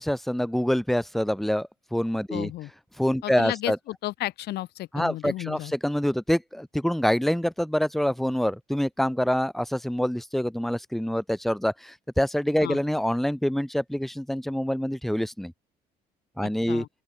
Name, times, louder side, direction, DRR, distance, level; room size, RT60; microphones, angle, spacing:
voice 1, 0.0-2.5 3.0-3.8 4.9-15.5 16.4-16.9, equal, ahead, 2.0 m, -26 dB
voice 2, 2.3-2.7 3.2-5.7 12.6-12.8 16.4-16.9, left 16 dB, 75° left, 1.5 m, -33 dB
open air
cardioid pair, 110°, 17 cm